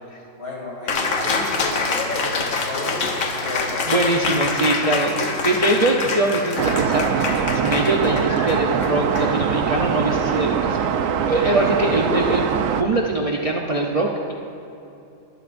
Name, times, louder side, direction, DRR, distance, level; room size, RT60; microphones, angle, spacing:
voice 1, 0.4-3.9 11.7-12.3, left 1 dB, 50° left, -4 dB, 3.1 m, -32 dB
Cheering, 0.9-9.8, left 4 dB, 90° left, 1.5 m, -26 dB
voice 2, 3.9-10.9 11.2-12.4 12.8-14.3, right 2 dB, 35° right, -1 dB, 0.7 m, -22 dB
sound 1, 6.6-12.8, right 7 dB, 85° right, 1.0 m, -22 dB
21.5 x 12.5 x 2.6 m, 2.8 s
omnidirectional pair, 1.4 m